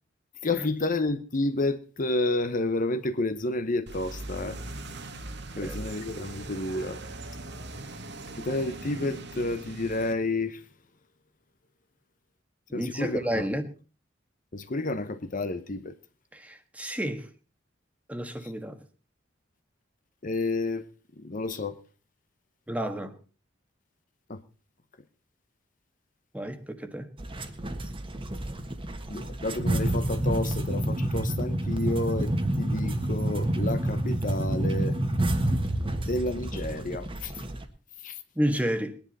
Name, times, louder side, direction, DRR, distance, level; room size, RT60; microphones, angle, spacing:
voice 1, 0.4-4.6 5.6-7.0 8.4-10.6 12.7-13.4 14.5-15.9 20.2-20.8 21.2-21.8 24.3-24.4 29.1-34.9 36.1-37.3 38.0-38.1, left 2 dB, 45° left, 0.9 m, -30 dB
sound 1, 3.9-10.1, right 2 dB, 60° right, 1.5 m, -40 dB
voice 2, 5.6-6.0 12.7-13.7 16.3-17.3 18.1-18.8 22.7-23.1 26.3-27.1 38.3-39.0, equal, 10° right, 1.4 m, -31 dB
sound 2, 27.2-37.6, right 1 dB, 25° right, 1.5 m, -29 dB
21.5 x 10.5 x 4.1 m
head